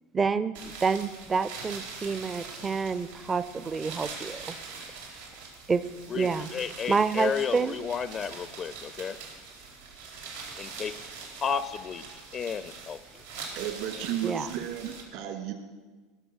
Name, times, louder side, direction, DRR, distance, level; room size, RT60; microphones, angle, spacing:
voice 1, 0.1-4.5 5.7-5.8 6.1-6.5 6.9-7.8 14.2-14.5, right 5 dB, 25° right, 13 dB, 0.5 m, -28 dB
sound 1, 0.5-15.0, right 4 dB, 85° right, 3.7 m, -43 dB
voice 2, 6.1-9.2 10.6-12.0 12.3-13.2 13.9-14.0, left 7 dB, 40° left, 14 dB, 0.5 m, -33 dB
voice 3, 13.5-15.5, right 10 dB, 65° right, 5 dB, 2.5 m, -33 dB
18.0 x 6.9 x 6.4 m, 1.3 s
hypercardioid pair, 80°, 0 cm